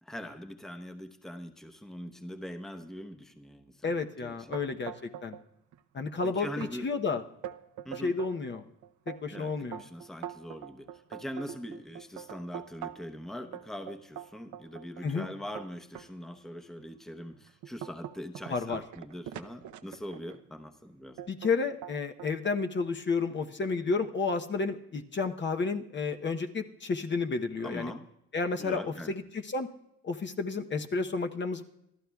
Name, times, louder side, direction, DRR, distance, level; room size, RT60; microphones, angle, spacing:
voice 1, 0.0-4.8 6.2-6.9 7.8-8.2 9.3-21.2 27.6-28.1 28.6-29.1, equal, ahead, 6 dB, 0.9 m, -42 dB
voice 2, 3.8-5.4 5.9-7.2 8.0-8.6 9.1-9.8 15.0-15.3 18.5-18.8 21.3-27.9 28.3-29.7 30.0-31.6, left 4 dB, 40° left, 5 dB, 0.9 m, -31 dB
sound 1, 4.5-5.4 5.7-6.2 6.6-6.7 7.2-8.3 8.8-13.1 13.5-16.1 16.7-16.8 17.3-20.4 21.2-21.5 21.8-22.6, right 10 dB, 75° right, 0.7 m, -43 dB
26.5 x 12.5 x 2.3 m, 0.80 s
cardioid pair, 90°, 30 cm